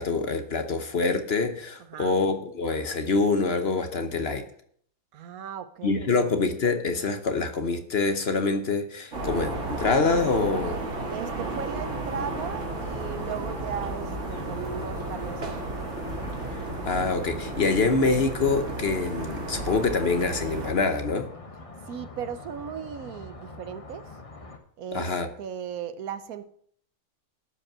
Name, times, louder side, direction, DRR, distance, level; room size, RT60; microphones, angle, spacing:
voice 1, 0.0-4.4 5.8-10.8 16.5-21.3 24.9-25.3, left 4 dB, 50° left, 1.1 m, -25 dB
voice 2, 1.8-2.2 5.1-6.3 11.1-15.7 21.5-24.1 24.8-26.5, right 8 dB, 75° right, 1.2 m, -37 dB
sound 1, 9.1-20.7, right 2 dB, 55° right, 2.2 m, -33 dB
sound 2, 11.7-24.6, left 2 dB, 25° left, 1.1 m, -44 dB
12.0 x 5.4 x 7.4 m
omnidirectional pair, 1.5 m